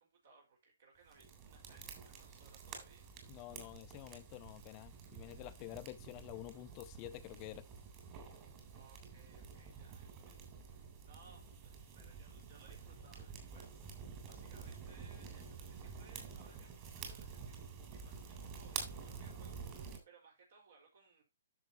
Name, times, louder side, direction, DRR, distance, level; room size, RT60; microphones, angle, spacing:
voice 1, 0.0-3.1 8.7-21.2, right 4 dB, 65° right, 5.1 m, -65 dB
sound 1, 1.1-20.0, right 6 dB, 30° right, 3.4 m, -50 dB
voice 2, 3.3-7.7, left 15 dB, 30° left, 0.5 m, -49 dB
10.5 x 7.0 x 3.0 m
hypercardioid pair, 150°, 0 cm